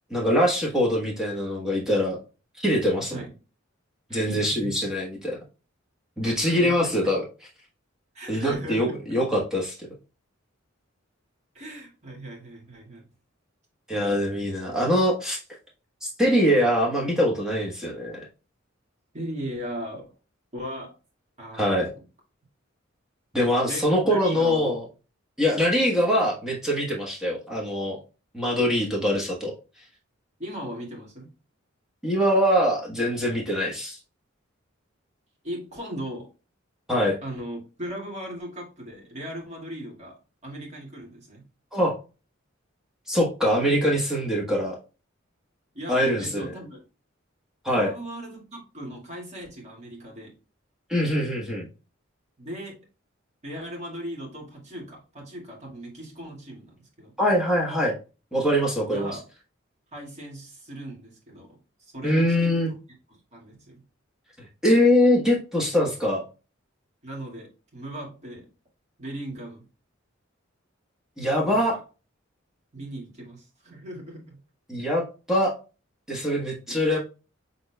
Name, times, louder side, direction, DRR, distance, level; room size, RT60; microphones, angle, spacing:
voice 1, 0.1-2.2 2.6-3.2 4.1-5.4 6.2-7.2 8.3-9.8 13.9-15.4 16.0-18.2 21.5-21.9 23.3-24.8 25.4-28.0 28.3-29.5 32.0-34.0 36.9-37.2 41.7-42.0 43.1-44.8 45.9-46.5 47.6-47.9 50.9-51.7 57.2-57.9 58.3-59.1 62.0-62.7 64.6-66.2 71.2-71.8 74.7-75.5 76.1-77.0, equal, 5° right, -3 dB, 1.2 m, -23 dB
voice 2, 4.1-4.9 6.2-6.9 8.1-9.3 11.5-13.1 19.1-20.0 20.5-21.0 21.4-22.0 23.7-24.8 30.4-31.3 35.4-36.3 37.2-41.4 45.7-46.8 47.7-50.3 52.4-52.9 53.4-57.1 58.9-59.2 59.9-62.8 63.1-63.8 67.0-68.5 69.0-69.6 71.5-71.8 72.7-74.4 76.7-76.8, right 1 dB, 35° right, -2 dB, 2.0 m, -38 dB
6.0 x 3.9 x 2.2 m, 0.32 s
head